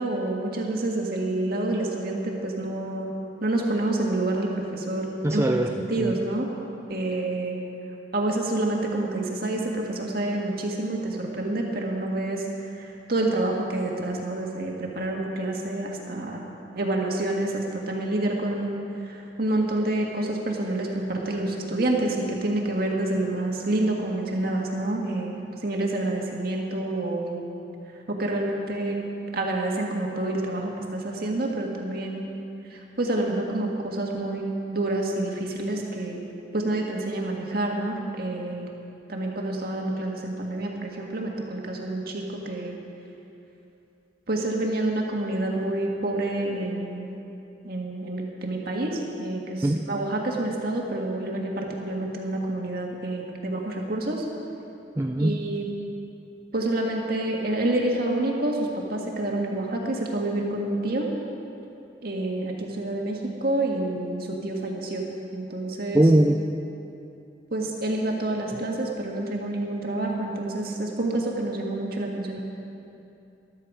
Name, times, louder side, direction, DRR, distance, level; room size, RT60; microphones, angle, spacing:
voice 1, 0.0-3.1 3.4-5.5 5.9-6.5 6.9-7.6 8.1-12.4 12.8-16.4 16.7-18.8 19.0-25.3 25.6-27.4 28.1-28.9 29.3-32.3 32.7-34.4 34.7-36.2 36.5-38.7 39.1-42.8 44.3-47.2 47.6-54.2 55.2-55.6 56.5-58.6 58.9-61.1 62.0-65.0 65.3-66.0 67.5-72.4, right 2 dB, 60° right, 0 dB, 1.8 m, -28 dB
voice 2, 5.2-5.7 6.0-6.2 49.6-49.8 55.0-55.4 65.9-66.4, right 1 dB, 15° right, 3 dB, 0.4 m, -20 dB
13.5 x 12.5 x 4.9 m, 2.8 s
head